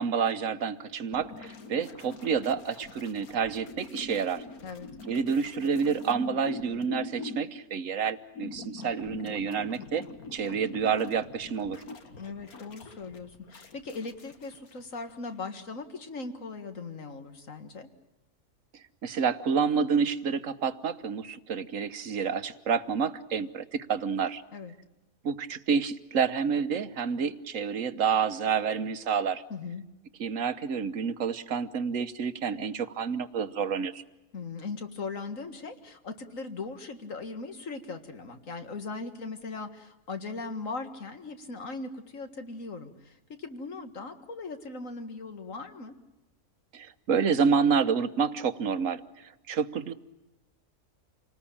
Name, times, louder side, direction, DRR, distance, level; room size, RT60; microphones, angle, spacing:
voice 1, 0.0-4.4 5.1-10.0 10.3-11.8 19.0-24.4 25.2-29.4 30.2-34.0 46.7-49.9, right 6 dB, 60° right, 11 dB, 1.4 m, -29 dB
sound 1, 1.1-7.4 8.4-15.1 15.4-15.5, left 3 dB, 75° left, 2.1 m, -44 dB
voice 2, 12.2-17.9 24.5-24.7 29.5-29.9 34.3-45.9, left 3 dB, 60° left, 7 dB, 2.2 m, -39 dB
28.0 x 19.5 x 8.6 m, 1.0 s
omnidirectional pair, 1.6 m